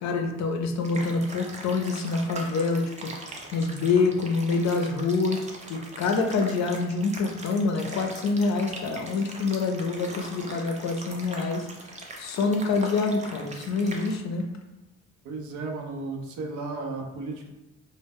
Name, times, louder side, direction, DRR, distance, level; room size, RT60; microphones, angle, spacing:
voice 1, 0.0-3.1 3.5-5.4 5.7-11.7 12.2-14.4, left 4 dB, 65° left, 5 dB, 0.5 m, -26 dB
sound 1, 0.8-14.2, right 2 dB, 25° right, 0.5 m, -41 dB
voice 2, 15.2-17.5, right 3 dB, 85° right, 3 dB, 0.5 m, -34 dB
2.0 x 2.0 x 3.4 m, 1.0 s
cardioid pair, 90°, 30 cm